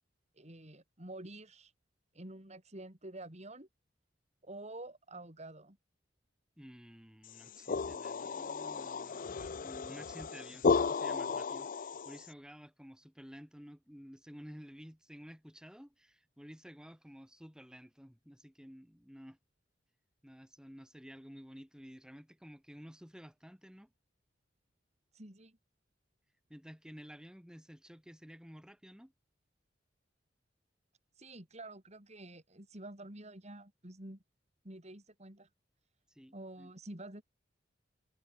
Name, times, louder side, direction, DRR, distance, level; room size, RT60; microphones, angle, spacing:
voice 1, 0.4-1.7 2.1-3.7 4.4-5.8 25.1-25.6 31.2-34.2 34.6-35.5 36.3-37.2, right 1 dB, 35° right, 4.1 m, -48 dB
voice 2, 6.6-19.4 20.2-23.9 26.5-29.1 36.1-36.7, equal, 5° right, 3.7 m, -52 dB
sound 1, 7.3-12.3, left 4 dB, 45° left, 0.5 m, -34 dB
head